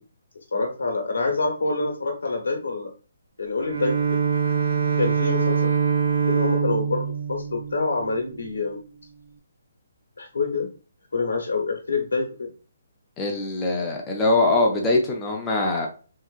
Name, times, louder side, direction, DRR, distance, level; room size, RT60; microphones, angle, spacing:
voice 1, 0.5-2.9 3.4-4.2 5.0-5.7 6.3-8.8 10.2-10.7 11.1-12.5, left 3 dB, 85° left, 2 dB, 0.9 m, -26 dB
Bowed string instrument, 3.6-8.5, right 6 dB, 55° right, 0.8 m, -24 dB
voice 2, 13.2-15.9, left 2 dB, 15° left, 0 dB, 0.5 m, -22 dB
3.4 x 2.8 x 2.4 m, 0.37 s
hypercardioid pair, 165°, 0 cm